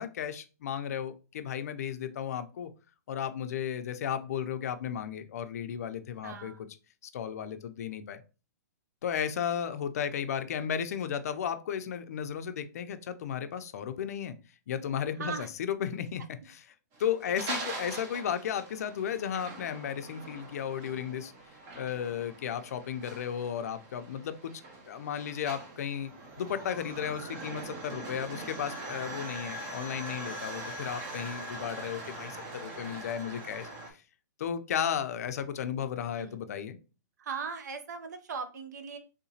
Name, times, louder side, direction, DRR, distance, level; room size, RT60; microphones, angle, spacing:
voice 1, 0.0-2.7 3.1-6.5 7.1-8.2 9.0-14.4 14.7-15.3 15.6-16.2 16.5-16.6 17.0-21.3 21.8-24.5 24.9-26.1 26.4-33.7 34.4-36.8, left 8 dB, 60° left, 9 dB, 0.4 m, -34 dB
voice 2, 6.2-6.6 15.2-15.5 17.2-17.6 36.2-36.4 37.2-39.0, right 5 dB, 75° right, 8 dB, 0.7 m, -39 dB
sound 1, 16.9-33.9, right 2 dB, 25° right, 0.7 m, -42 dB
3.6 x 2.8 x 2.7 m, 0.33 s
hypercardioid pair, 160°, 10 cm